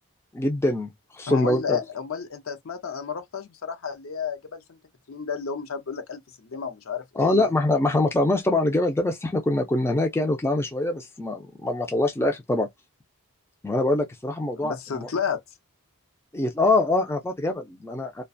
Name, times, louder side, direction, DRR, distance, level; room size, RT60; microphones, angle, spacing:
voice 1, 0.3-1.8 7.2-12.7 13.6-15.1 16.3-18.2, left 2 dB, 10° left, 0.4 m, -24 dB
voice 2, 1.3-4.8 5.1-7.5 14.5-15.4, left 6 dB, 65° left, 0.6 m, -32 dB
2.4 x 2.2 x 2.5 m
head